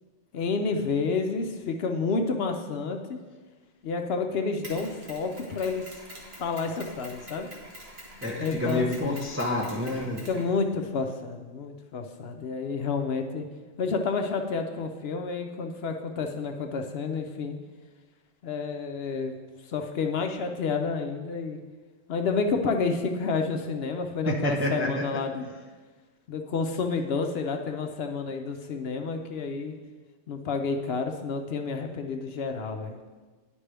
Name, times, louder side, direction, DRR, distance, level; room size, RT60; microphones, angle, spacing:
voice 1, 0.3-3.2 3.8-6.0 6.4-7.5 8.4-9.2 10.2-13.5 13.8-17.5 18.4-19.4 19.7-21.6 22.1-25.5 26.3-29.7 30.3-33.0, left 4 dB, 65° left, 4 dB, 0.8 m, -30 dB
Mechanisms, 4.6-11.0, equal, 55° right, 1.7 m, -46 dB
voice 2, 8.2-10.3 24.3-25.0, left 1 dB, 15° right, 0 dB, 0.4 m, -28 dB
10.0 x 5.2 x 3.3 m, 1.4 s
omnidirectional pair, 1.2 m